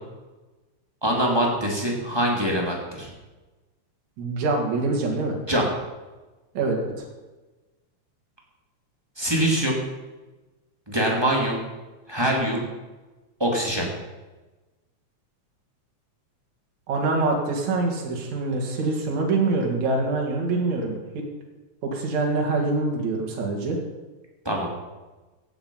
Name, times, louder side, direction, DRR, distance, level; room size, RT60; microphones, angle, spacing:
voice 1, 1.0-3.1 5.5-5.7 9.2-9.8 10.9-11.6 12.1-12.6 13.4-13.9 24.4-24.7, right 1 dB, 10° right, -2 dB, 2.5 m, -23 dB
voice 2, 4.2-5.4 6.6-7.1 16.9-21.0 21.8-23.8, right 3 dB, 70° right, 0 dB, 3.4 m, -25 dB
15.5 x 9.5 x 5.5 m, 1.2 s
omnidirectional pair, 3.4 m